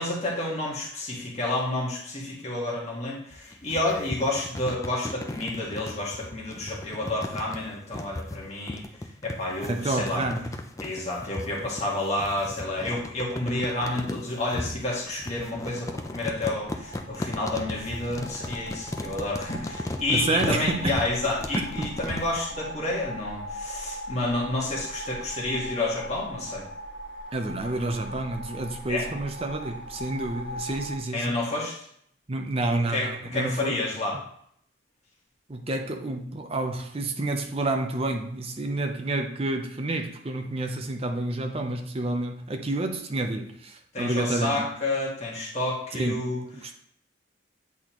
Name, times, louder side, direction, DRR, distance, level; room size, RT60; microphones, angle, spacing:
voice 1, 0.0-8.8 9.2-10.2 10.8-26.6 28.9-29.1 31.1-31.8 32.9-34.2 43.9-46.4, left 2 dB, 35° left, 1.6 m, -30 dB
sound 1, 3.3-22.4, left 1 dB, 15° left, 0.4 m, -36 dB
voice 2, 9.7-10.6 20.1-21.0 21.8-21.9 27.3-31.4 32.3-33.8 35.5-44.7 45.9-46.7, right 2 dB, 30° right, 0.6 m, -29 dB
sound 2, 15.1-31.0, equal, 70° left, 1.4 m, -40 dB
8.4 x 4.1 x 3.0 m
head